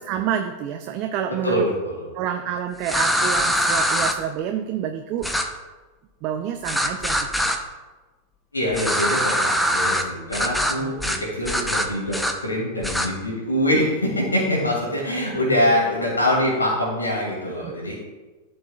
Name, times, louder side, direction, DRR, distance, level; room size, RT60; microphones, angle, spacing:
voice 1, 0.0-1.7 2.1-5.3 6.2-7.4 10.8-10.9 17.6-17.7, right 9 dB, 45° right, 6 dB, 0.5 m, -28 dB
voice 2, 1.4-2.0 8.5-17.9, left 1 dB, 85° left, -3 dB, 2.3 m, -24 dB
sound 1, 2.8-4.1 5.2-5.4 6.7-7.6 8.7-10.0 10.3-10.7 11.0-11.2 11.4-12.3 12.8-13.1, equal, ahead, 0.7 m, -22 dB
12.5 x 5.2 x 2.4 m, 1.3 s
figure-of-eight pair, 90°, 0 cm